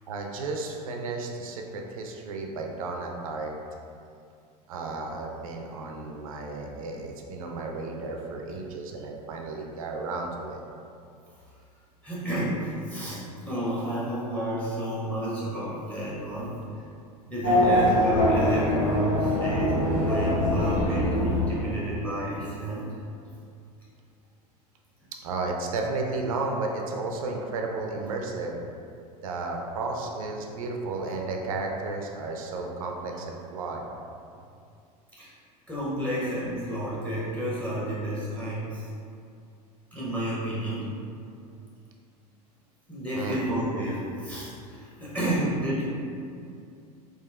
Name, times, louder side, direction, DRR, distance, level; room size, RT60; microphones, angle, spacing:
voice 1, 0.1-3.5 4.7-10.6 25.2-28.6 29.2-33.8 43.1-43.4, right 3 dB, 60° right, 1 dB, 0.4 m, -33 dB
voice 2, 12.0-16.6 17.3-19.8 20.1-22.9 35.1-35.3 35.7-38.9 39.9-40.9 42.9-45.8, equal, 5° left, -8 dB, 0.7 m, -31 dB
Race car auto racing / Accelerating revving vroom, 17.4-22.1, left 1 dB, 35° left, 1.1 m, -23 dB
3.7 x 2.5 x 2.2 m, 2.4 s
figure-of-eight pair, 80°, 21 cm